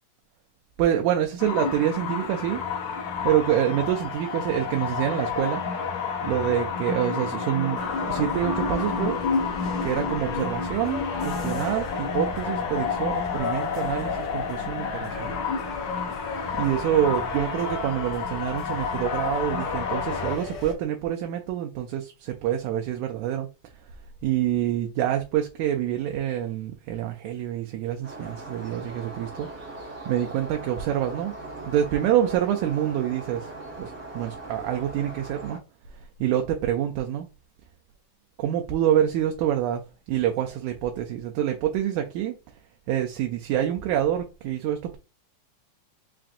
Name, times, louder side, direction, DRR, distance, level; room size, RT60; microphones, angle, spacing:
voice 1, 0.8-2.6 3.2-5.6 6.2-9.2 9.8-15.4 16.5-23.5 24.2-29.5 30.1-31.3 31.7-33.5 33.8-35.6 35.9-37.3 38.4-42.4 42.9-45.0, right 11 dB, 80° right, 1.8 m, -26 dB
sound 1, 1.4-20.4, left 5 dB, 70° left, 2.0 m, -30 dB
sound 2, 7.8-20.7, left 3 dB, 55° left, 1.4 m, -36 dB
sound 3, 28.0-35.6, right 2 dB, 55° right, 0.7 m, -40 dB
5.7 x 2.5 x 2.5 m
omnidirectional pair, 3.7 m